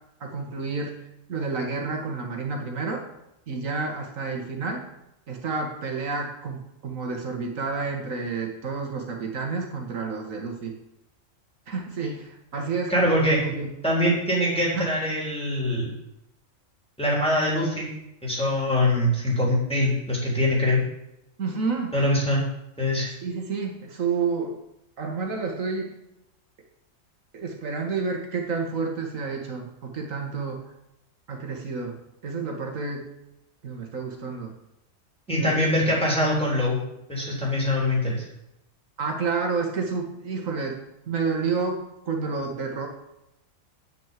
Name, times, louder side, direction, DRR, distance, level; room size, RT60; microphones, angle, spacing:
voice 1, 0.2-3.0 3.5-4.8 5.3-10.7 11.7-12.9 13.3-13.7 14.0-14.2 14.7-14.9 21.4-21.9 23.2-24.6 25.0-25.9 27.3-30.6 31.3-33.1 33.6-34.5 35.3-35.7 39.0-40.8 41.1-42.9, right 4 dB, 80° right, 2 dB, 1.9 m, -30 dB
voice 2, 12.9-13.4 13.8-15.9 17.0-17.9 18.2-20.8 21.9-22.4 22.8-23.1 35.3-36.8 37.1-38.2, left 1 dB, 5° left, -5 dB, 3.6 m, -23 dB
9.1 x 6.1 x 7.4 m, 0.85 s
omnidirectional pair, 1.3 m